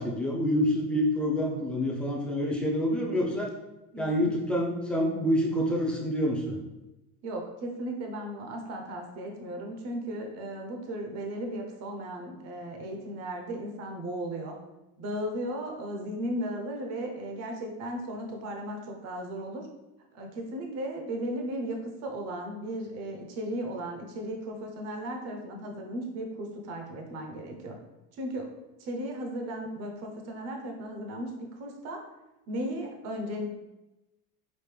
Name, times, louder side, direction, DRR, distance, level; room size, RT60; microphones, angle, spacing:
voice 1, 0.0-3.5 4.0-6.6, equal, 5° left, -2 dB, 0.6 m, -27 dB
voice 2, 3.9-4.4 7.2-14.6 15.0-19.7 20.1-27.8 28.1-28.5 28.8-32.0 32.5-33.5, right 1 dB, 45° right, 2 dB, 0.7 m, -36 dB
5.2 x 2.6 x 3.2 m, 0.99 s
cardioid pair, 150°, 37 cm